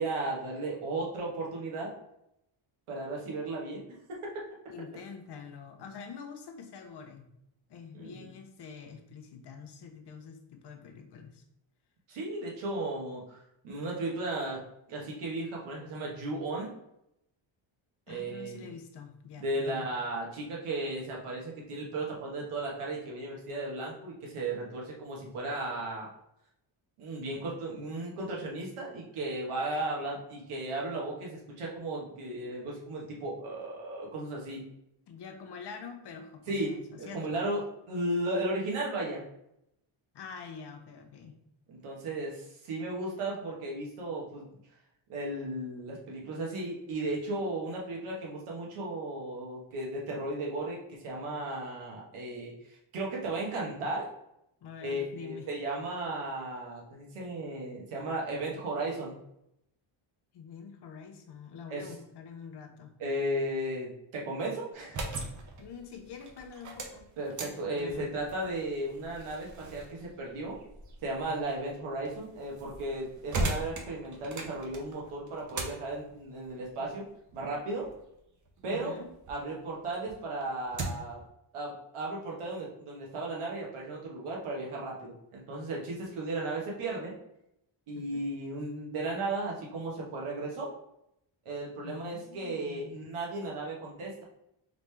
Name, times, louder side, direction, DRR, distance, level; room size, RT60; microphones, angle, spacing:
voice 1, 0.0-1.9 2.9-4.2 7.9-8.3 12.1-14.6 14.9-16.7 18.1-18.7 19.4-26.1 27.0-34.6 36.5-39.2 41.7-44.5 45.1-54.1 54.8-59.2 61.7-61.9 63.0-65.0 67.2-70.6 71.0-77.1 77.3-77.9 78.6-79.0 79.3-81.2 81.5-87.1 87.9-90.7 91.4-94.2, right 2 dB, 85° right, -3 dB, 1.3 m, -35 dB
voice 2, 4.7-7.3 7.7-11.4 18.1-19.9 35.1-37.5 40.1-41.4 54.6-55.5 60.3-62.9 65.6-67.1 67.4-68.2 78.7-79.1 87.9-88.3 91.8-93.0, left 6 dB, 55° left, 6 dB, 0.7 m, -46 dB
sound 1, 64.7-79.4 79.8-81.2, right 2 dB, 40° right, 0.7 m, -40 dB
3.9 x 3.2 x 3.3 m, 0.80 s
cardioid pair, 130°, 49 cm